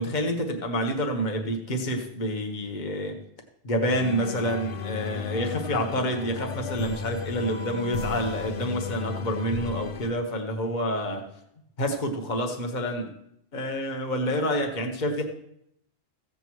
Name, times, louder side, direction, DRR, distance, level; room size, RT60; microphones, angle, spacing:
voice 1, 0.0-3.2 3.6-11.2 11.8-13.1 13.5-15.2, equal, 40° left, 3 dB, 1.3 m, -28 dB
sound 1, 3.9-10.1, left 6 dB, 90° left, 1.0 m, -34 dB
15.5 x 7.9 x 3.1 m, 0.74 s
omnidirectional pair, 1.2 m